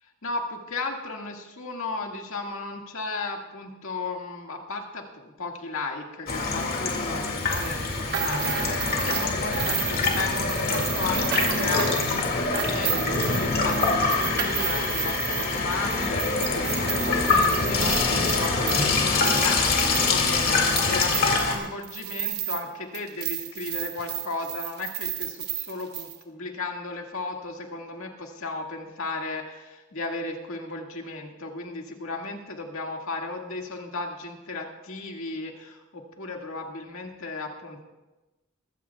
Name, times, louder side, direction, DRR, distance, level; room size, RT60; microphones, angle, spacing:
voice 1, 0.2-37.8, left 3 dB, 80° left, 1 dB, 1.9 m, -35 dB
Water tap faucet / Sink (filling or washing), 6.3-21.6, left 3 dB, 45° left, 2.2 m, -25 dB
sound 1, 7.5-22.7 22.9-26.2, right 10 dB, 50° right, 1.2 m, -33 dB
21.5 x 15.5 x 2.3 m, 1.1 s
head